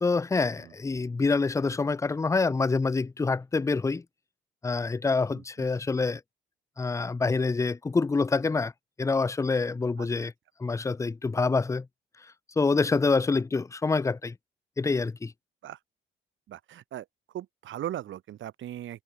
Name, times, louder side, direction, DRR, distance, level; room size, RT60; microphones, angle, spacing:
voice 1, 0.0-4.0 4.6-6.2 6.8-8.7 9.0-10.3 10.6-11.9 12.6-14.3 14.8-15.3, left 4 dB, 15° left, 0.5 m, -26 dB
voice 2, 10.0-10.3 15.6-15.8 16.5-17.1 17.3-19.0, right 12 dB, 75° right, 6.0 m, -38 dB
cardioid pair, 90°, 20 cm